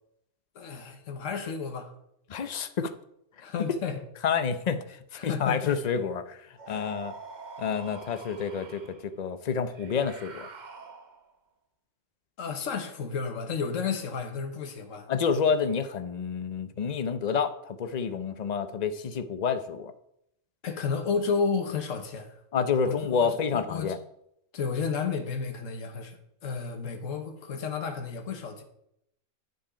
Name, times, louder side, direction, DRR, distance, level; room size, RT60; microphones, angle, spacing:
voice 1, 0.5-1.9 3.4-4.0 5.2-5.8 6.7-6.9 12.4-15.1 20.6-22.4 22.8-23.9 24.5-28.6, left 5 dB, 85° left, 6 dB, 1.4 m, -32 dB
voice 2, 2.3-2.9 4.2-6.4 6.7-7.1 7.6-10.5 15.1-19.9 22.5-24.0, left 6 dB, 40° left, 10 dB, 0.6 m, -29 dB
sound 1, 6.6-9.0 9.7-11.4, right 4 dB, 40° right, 1.0 m, -45 dB
9.6 x 7.4 x 5.0 m, 0.76 s
omnidirectional pair, 1.3 m